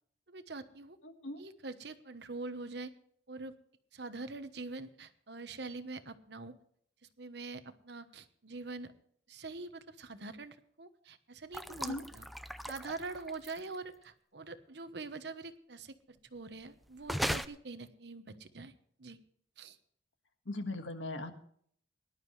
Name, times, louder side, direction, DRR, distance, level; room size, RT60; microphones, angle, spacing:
voice 1, 0.3-1.0 1.4-2.9 3.3-3.5 3.9-6.5 7.2-8.9 9.3-12.2 12.7-18.7 19.0-19.2 19.6-19.8, right 3 dB, 55° right, 10 dB, 1.1 m, -44 dB
voice 2, 1.0-1.4 11.7-12.0 20.5-21.3, left 2 dB, 75° left, 6 dB, 1.7 m, -39 dB
sound 1, 11.5-13.8 17.0-17.5, equal, ahead, 0.4 m, -37 dB
19.5 x 11.5 x 3.2 m, 0.62 s
head